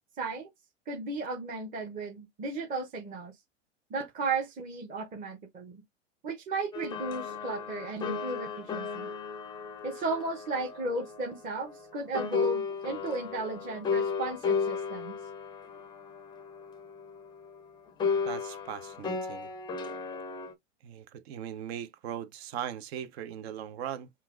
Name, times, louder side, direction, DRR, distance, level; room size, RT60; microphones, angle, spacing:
voice 1, 0.2-0.5 0.9-3.3 3.9-5.8 6.2-9.1 9.8-15.1, right 3 dB, 20° right, 0.8 m, -35 dB
sound 1, 6.7-11.9 12.1-17.6 18.0-20.5, left 5 dB, 10° left, 0.5 m, -34 dB
voice 2, 18.2-19.5 20.8-24.1, right 10 dB, 55° right, 0.7 m, -39 dB
5.7 x 2.4 x 2.4 m
hypercardioid pair, 105°, 37 cm